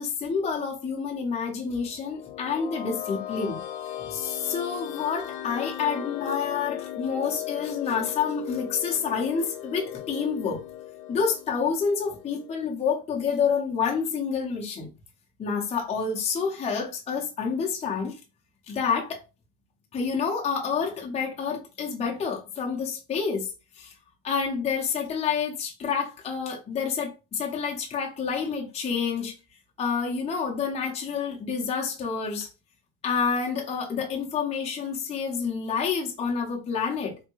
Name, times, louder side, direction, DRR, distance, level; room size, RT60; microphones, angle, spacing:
voice 1, 0.0-3.6 4.1-10.6 11.1-14.9 15.4-18.2 18.7-19.2 19.9-23.5 23.8-23.9 24.2-29.3 29.8-32.5 33.0-37.2, left 6 dB, 15° left, 0.6 m, -28 dB
sound 1, 1.8-12.7, left 12 dB, 70° left, 0.7 m, -37 dB
3.5 x 2.1 x 3.0 m
supercardioid pair, 135°, 46 cm